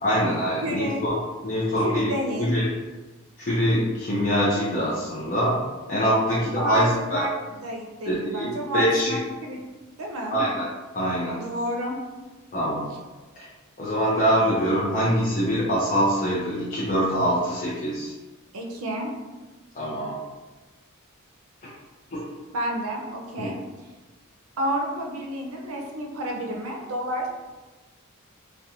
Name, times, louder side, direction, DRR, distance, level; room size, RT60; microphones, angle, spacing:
voice 1, 0.0-2.1 2.4-2.7 3.4-5.6 5.9-7.2 8.1-9.2 10.3-10.7 10.9-11.4 12.5-12.9 13.4-13.5 13.8-18.1 19.8-20.2 21.6-21.7 22.1-22.3 23.4-23.5, equal, 40° left, -8 dB, 0.5 m, -24 dB
voice 2, 0.6-1.0 1.8-2.5 6.6-7.3 7.6-9.6 10.0-10.4 11.3-12.0 18.5-19.1 22.5-23.6 24.6-27.3, equal, 75° right, 1 dB, 0.5 m, -30 dB
2.4 x 2.1 x 2.8 m, 1.2 s
head